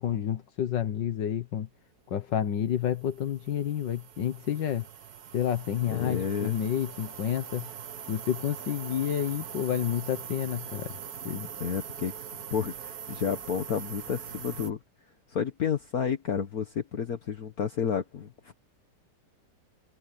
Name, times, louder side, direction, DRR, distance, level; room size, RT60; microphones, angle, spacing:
voice 1, 0.0-1.7 2.1-4.9 5.3-7.7 8.1-10.9 11.3-11.5, left 10 dB, 80° left, 1.9 m, -29 dB
sound 1, 2.5-14.7, right 8 dB, 60° right, 1.5 m, -42 dB
voice 2, 5.9-6.6 11.6-12.1 12.5-14.8 15.3-18.5, left 7 dB, 55° left, 1.7 m, -31 dB
omnidirectional pair, 1.9 m